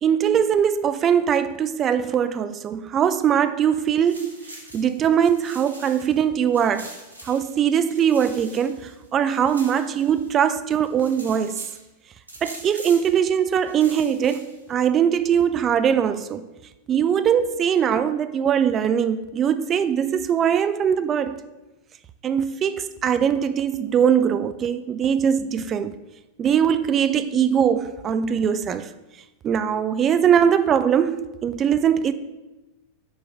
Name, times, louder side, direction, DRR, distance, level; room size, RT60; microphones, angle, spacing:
voice 1, 0.0-4.3 4.7-6.9 7.3-11.6 12.4-16.4 16.9-21.4 22.2-25.9 26.4-28.9 29.4-32.1, right 8 dB, 25° right, 0.3 m, -21 dB
sound 1, 3.7-6.2 6.5-10.5 10.8-11.8 12.3-13.2 13.6-14.7, right 1 dB, 80° right, 0.9 m, -44 dB
6.3 x 4.7 x 3.5 m
figure-of-eight pair, 90°, 0 cm